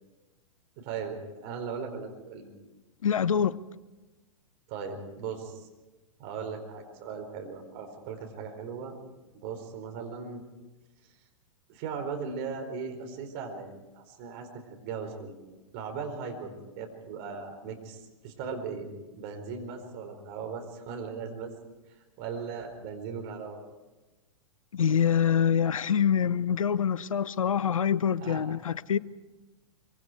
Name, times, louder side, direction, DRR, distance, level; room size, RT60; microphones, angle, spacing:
voice 1, 0.8-2.5 4.7-5.7 6.2-8.9 9.3-10.4 11.7-15.3 15.7-18.9 19.1-21.5 22.2-23.6 28.2-28.5, right 5 dB, 45° right, 4.6 m, -38 dB
voice 2, 3.0-3.6 24.7-29.0, left 8 dB, 75° left, 0.7 m, -25 dB
24.5 x 24.0 x 4.8 m
figure-of-eight pair, 100°, 17 cm